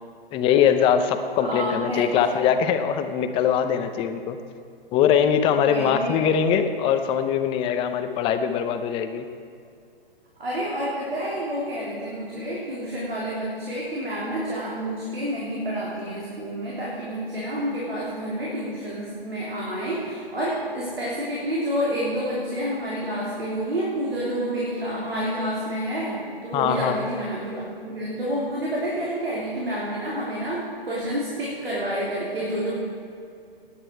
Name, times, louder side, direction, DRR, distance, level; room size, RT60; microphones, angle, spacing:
voice 1, 0.3-4.4 4.9-9.3 26.5-27.0, left 8 dB, 20° left, 8 dB, 0.7 m, -22 dB
voice 2, 1.4-2.1 5.6-6.1 10.4-32.8, equal, 80° right, -6 dB, 3.5 m, -29 dB
16.5 x 10.0 x 4.6 m, 2.4 s
figure-of-eight pair, 130°, 30 cm